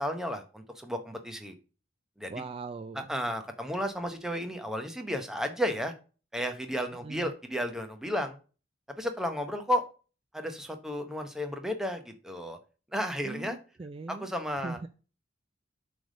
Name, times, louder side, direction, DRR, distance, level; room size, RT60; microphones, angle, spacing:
voice 1, 0.0-1.5 2.2-2.3 3.0-5.9 6.3-8.4 9.0-9.8 10.3-12.6 12.9-13.6 14.1-14.8, equal, ahead, 6 dB, 0.7 m, -33 dB
voice 2, 2.3-3.1 7.0-7.3 13.2-14.3 14.6-14.9, right 3 dB, 30° right, 10 dB, 0.3 m, -40 dB
7.7 x 3.4 x 6.3 m, 0.36 s
head